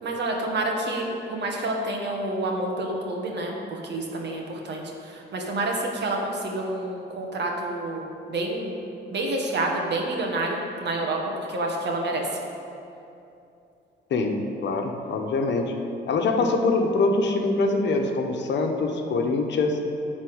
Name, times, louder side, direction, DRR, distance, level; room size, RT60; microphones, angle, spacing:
voice 1, 0.0-8.9 9.1-12.2, right 2 dB, 60° right, 1 dB, 1.7 m, -28 dB
voice 2, 14.1-15.7 16.1-19.8, left 3 dB, 65° left, 3 dB, 1.1 m, -24 dB
11.0 x 4.2 x 7.9 m, 2.7 s
cardioid pair, 90°, 20 cm